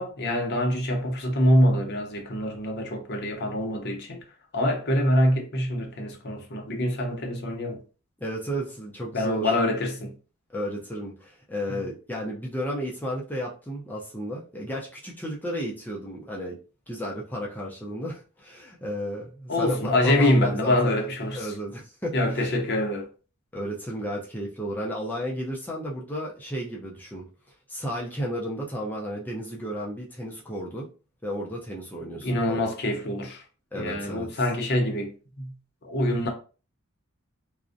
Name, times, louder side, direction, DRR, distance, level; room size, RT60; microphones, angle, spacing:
voice 1, 0.0-4.2 4.5-7.8 9.1-10.1 19.5-21.5 22.1-23.1 32.2-33.4 33.7-35.1 35.4-35.5 35.8-36.3, left 1 dB, 50° left, 0.6 m, -25 dB
voice 2, 8.2-9.5 10.5-16.6 16.9-20.9 21.4-22.5 23.5-27.3 27.7-30.9 31.2-32.6 33.7-34.3, equal, 10° left, 0.4 m, -33 dB
2.5 x 2.0 x 2.4 m
head